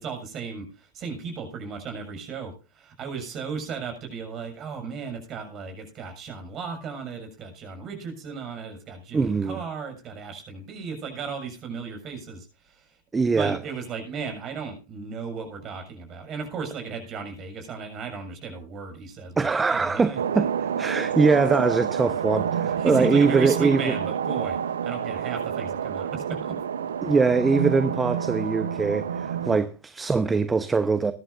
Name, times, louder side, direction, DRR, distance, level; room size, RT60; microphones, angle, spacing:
voice 1, 0.0-12.9 13.3-20.2 22.8-26.6, right 5 dB, 30° right, 6.9 m, -35 dB
voice 2, 9.1-9.6 13.1-13.6 19.4-23.9 27.0-31.1, right 4 dB, 15° right, 1.0 m, -22 dB
sound 1, 20.2-29.6, right 8 dB, 65° right, 0.8 m, -28 dB
21.0 x 11.5 x 2.6 m
figure-of-eight pair, 90°, 0 cm